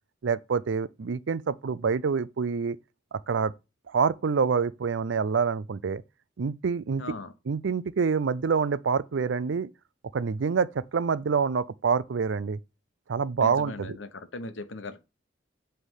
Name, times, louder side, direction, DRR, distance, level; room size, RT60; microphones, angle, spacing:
voice 1, 0.2-2.8 3.1-3.5 3.9-6.0 6.4-7.0 7.5-9.7 10.1-12.6 13.1-14.0, right 5 dB, 75° right, 0.5 m, -26 dB
voice 2, 7.0-7.3 13.4-15.0, left 2 dB, 80° left, 1.0 m, -39 dB
8.1 x 3.4 x 5.6 m
head